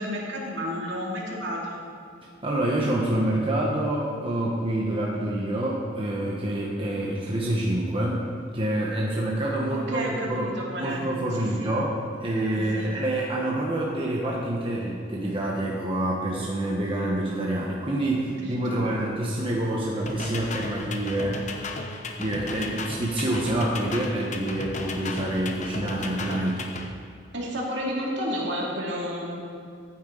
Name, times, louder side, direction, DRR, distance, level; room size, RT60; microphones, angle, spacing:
voice 1, 0.0-1.8 9.7-11.0 11.3-11.7 12.5-12.9 18.3-19.0 27.3-29.4, equal, 70° right, -3 dB, 2.5 m, -32 dB
voice 2, 2.4-8.3 8.5-21.5 22.2-26.6, right 1 dB, 30° right, -3 dB, 1.2 m, -27 dB
sound 1, 20.1-26.9, left 3 dB, 40° left, 0.9 m, -35 dB
14.5 x 9.0 x 3.9 m, 2.5 s
head